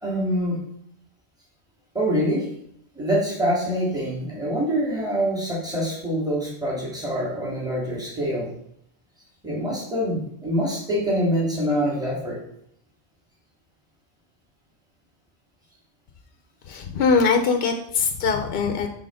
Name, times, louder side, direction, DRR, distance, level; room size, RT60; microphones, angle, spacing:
voice 1, 0.0-0.6 1.9-2.5 3.0-8.5 9.4-12.4, equal, 5° right, -5 dB, 1.8 m, -25 dB
voice 2, 16.6-18.9, left 5 dB, 65° left, 5 dB, 0.8 m, -22 dB
6.0 x 3.8 x 4.8 m, 0.73 s
omnidirectional pair, 1.1 m